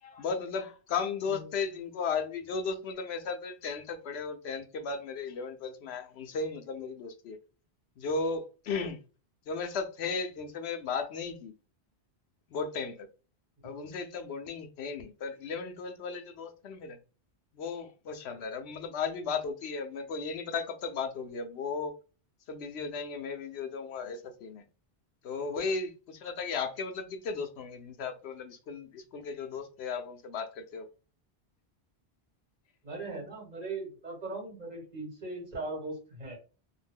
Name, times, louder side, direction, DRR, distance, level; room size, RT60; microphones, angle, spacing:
voice 1, 0.0-7.4 8.0-9.0 9.5-11.5 12.5-13.1 13.6-17.0 17.5-21.9 22.5-24.6 25.2-30.9, left 5 dB, 80° left, 0.8 m, -35 dB
voice 2, 32.8-36.4, right 3 dB, 40° right, 1.2 m, -39 dB
2.5 x 2.1 x 3.2 m
omnidirectional pair, 1.1 m